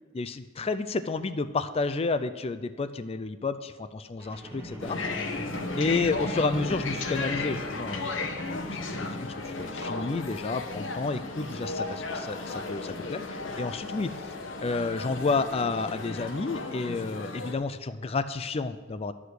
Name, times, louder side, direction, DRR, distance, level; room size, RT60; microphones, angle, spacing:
voice 1, 0.1-5.3 5.8-8.2 8.5-14.1 14.6-19.1, left 3 dB, 30° left, 11 dB, 0.4 m, -31 dB
sound 1, 4.2-11.6 12.2-12.3, equal, 10° right, 1.3 m, -41 dB
sound 2, 4.8-17.5, left 3 dB, 65° left, 1.1 m, -35 dB
sound 3, 5.2-16.5, right 1 dB, 55° right, 1.4 m, -55 dB
11.5 x 4.9 x 8.0 m, 1.3 s
head